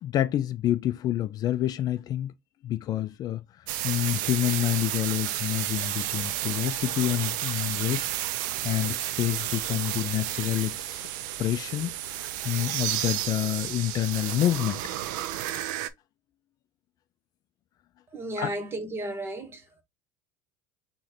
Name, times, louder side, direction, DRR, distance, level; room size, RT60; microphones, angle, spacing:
voice 1, 0.0-2.3 2.6-11.0 11.4-14.8 18.4-18.5, left 13 dB, 40° left, 0.4 m, -28 dB
sound 1, 3.7-15.9, right 13 dB, 80° right, 0.6 m, -32 dB
voice 2, 18.1-19.8, right 1 dB, 25° right, 1.1 m, -34 dB
3.9 x 3.1 x 4.2 m
supercardioid pair, 130°, 10 cm